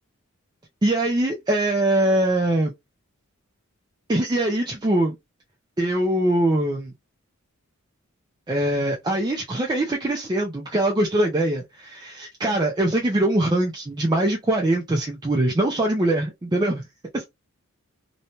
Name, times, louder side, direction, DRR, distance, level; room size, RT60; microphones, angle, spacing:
voice 1, 0.8-2.7 4.1-5.2 5.8-6.9 8.5-16.8 17.1-17.2, right 1 dB, 20° right, 0.4 m, -22 dB
2.6 x 2.1 x 2.9 m
head